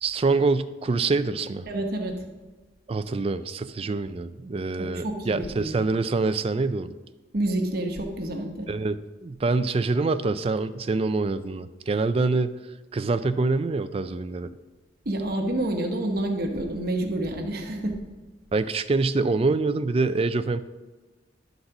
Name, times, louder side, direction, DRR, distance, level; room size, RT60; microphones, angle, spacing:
voice 1, 0.0-1.7 2.9-6.9 8.7-12.5 12.9-14.5 18.5-20.6, right 3 dB, 30° right, 12 dB, 0.3 m, -25 dB
voice 2, 1.7-2.1 4.8-5.7 7.3-8.7 15.0-17.9, right 1 dB, 50° right, 3 dB, 1.0 m, -28 dB
11.5 x 4.0 x 5.8 m, 1.2 s
head